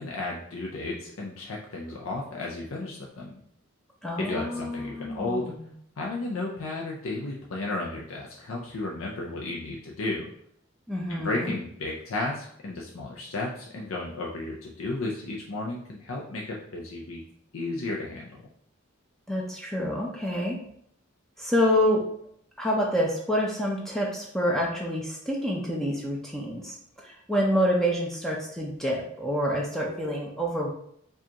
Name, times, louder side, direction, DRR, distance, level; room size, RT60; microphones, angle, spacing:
voice 1, 0.0-3.3 4.2-5.5 6.0-10.3 11.1-17.2 17.5-18.4, left 2 dB, 85° left, -2 dB, 0.5 m, -33 dB
voice 2, 4.0-5.7 10.9-11.6 19.3-20.6 21.4-22.0 22.6-30.7, equal, ahead, -3 dB, 0.5 m, -27 dB
4.9 x 2.4 x 2.8 m, 0.68 s
head